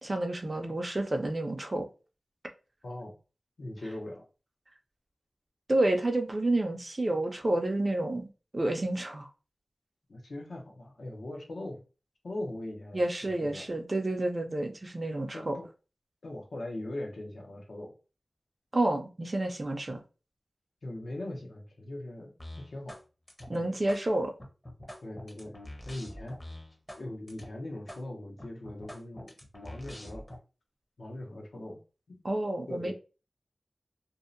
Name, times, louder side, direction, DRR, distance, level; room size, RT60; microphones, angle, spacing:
voice 1, 0.0-1.9 5.7-8.3 8.5-9.3 12.9-15.5 18.7-20.0 23.5-24.3 32.2-32.9, right 1 dB, 35° right, 0.4 m, -29 dB
voice 2, 2.8-3.1 3.6-4.2 10.1-11.8 12.2-13.8 15.3-15.7 16.2-17.9 20.8-23.0 23.5-23.8 25.0-26.4 27.0-30.3 31.0-31.8 32.1-32.2 32.7-32.9, left 1 dB, 85° left, 0.7 m, -40 dB
sound 1, 22.4-23.0 23.3-24.0 24.4-27.0 27.3-27.5 27.9-28.0 28.4-30.4, left 1 dB, 25° left, 0.6 m, -45 dB
2.6 x 2.0 x 2.5 m
wide cardioid pair, 75°, 0 cm